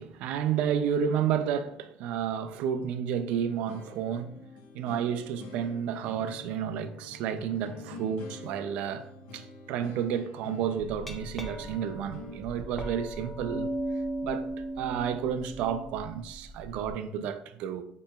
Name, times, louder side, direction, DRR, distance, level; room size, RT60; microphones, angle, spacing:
voice 1, 0.0-4.4 4.7-13.7 14.2-14.5 14.8-17.8, right 8 dB, 70° right, 0.4 m, -31 dB
sound 1, 3.3-12.4, left 2 dB, 75° left, 0.7 m, -46 dB
Glass, 10.8-16.9, right 1 dB, 5° left, 0.4 m, -37 dB
6.6 x 3.0 x 2.3 m
cardioid pair, 170°, 2 cm